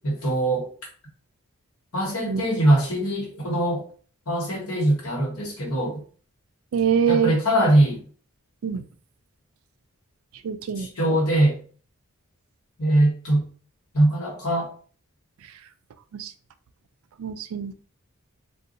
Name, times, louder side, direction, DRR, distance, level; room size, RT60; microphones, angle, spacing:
voice 1, 0.0-0.7 1.9-3.8 4.3-6.0 7.1-8.0 10.8-11.6 12.8-13.5 13.9-14.7, right 1 dB, 85° left, -2 dB, 1.4 m, -22 dB
voice 2, 6.7-7.3 8.6-8.8 10.4-10.9 16.2-16.3 17.2-17.9, right 7 dB, 75° right, 10 dB, 0.4 m, -24 dB
2.6 x 2.3 x 3.8 m, 0.41 s
head